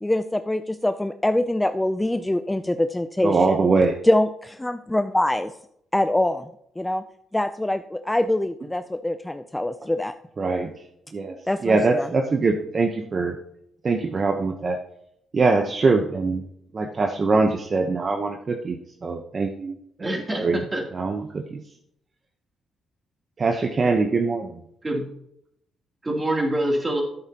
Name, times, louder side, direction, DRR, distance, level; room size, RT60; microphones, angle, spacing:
voice 1, 0.0-3.6 4.0-5.5 5.9-6.5 6.8-7.0 7.3-10.1 11.5-12.1, left 1 dB, 10° left, 9 dB, 0.4 m, -24 dB
voice 2, 3.2-4.0 10.4-10.7 11.1-11.4 11.6-13.4 13.8-14.8 15.3-16.4 16.7-19.7 20.3-20.6 20.9-21.6 23.4-24.6, right 3 dB, 40° right, 4 dB, 0.9 m, -22 dB
voice 3, 20.0-20.8 24.8-25.0 26.0-27.0, right 1 dB, 20° right, 0 dB, 2.9 m, -25 dB
10.5 x 9.0 x 2.9 m, 0.73 s
cardioid pair, 90°, 0 cm